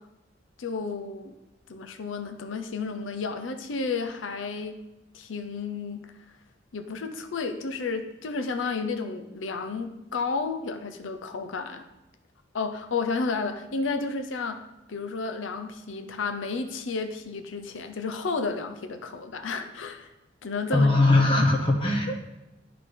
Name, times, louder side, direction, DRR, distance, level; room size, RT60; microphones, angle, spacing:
voice 1, 0.6-1.3 1.7-4.8 5.1-6.1 6.7-11.8 12.5-20.1 20.4-20.9 21.4-21.5, left 4 dB, 85° left, 7 dB, 0.6 m, -32 dB
voice 2, 20.7-22.2, left 2 dB, 25° left, 0 dB, 0.9 m, -20 dB
11.0 x 3.9 x 3.3 m, 0.95 s
head